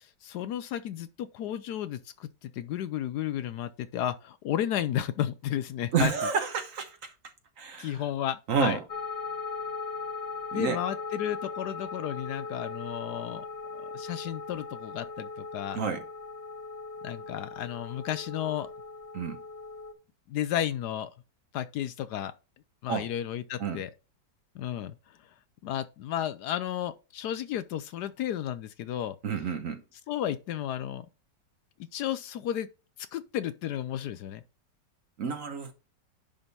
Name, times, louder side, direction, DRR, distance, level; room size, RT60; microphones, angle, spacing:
voice 1, 0.0-6.1 7.8-8.8 10.5-13.4 13.7-15.8 17.0-18.7 20.3-21.1 21.5-22.3 22.8-23.9 24.5-25.0 25.6-29.2 30.1-31.1 31.9-32.7 33.1-34.4, left 11 dB, 75° left, 1.1 m, -33 dB
voice 2, 5.9-7.1 7.6-8.0 8.5-8.8 10.5-10.8 15.8-16.0 19.1-19.4 22.9-23.0 23.6-23.8 29.2-29.8 35.2-35.7, right 6 dB, 55° right, 1.1 m, -29 dB
sound 1, 8.9-19.9, left 4 dB, 45° left, 1.2 m, -39 dB
10.5 x 3.6 x 4.0 m
omnidirectional pair, 1.9 m